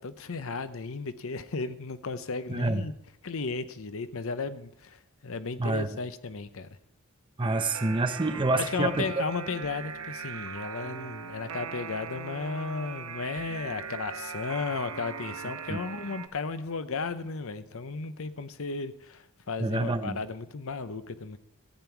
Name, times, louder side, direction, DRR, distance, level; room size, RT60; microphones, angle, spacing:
voice 1, 0.0-2.9 3.2-6.7 8.5-21.4, left 4 dB, 65° left, 12 dB, 0.8 m, -34 dB
voice 2, 2.5-2.8 5.6-5.9 7.4-9.0 15.7-15.8 19.6-20.2, right 2 dB, 20° right, 8 dB, 0.7 m, -27 dB
sound 1, 7.4-16.3, right 6 dB, 75° right, 1.0 m, -40 dB
14.5 x 8.9 x 4.6 m, 0.75 s
head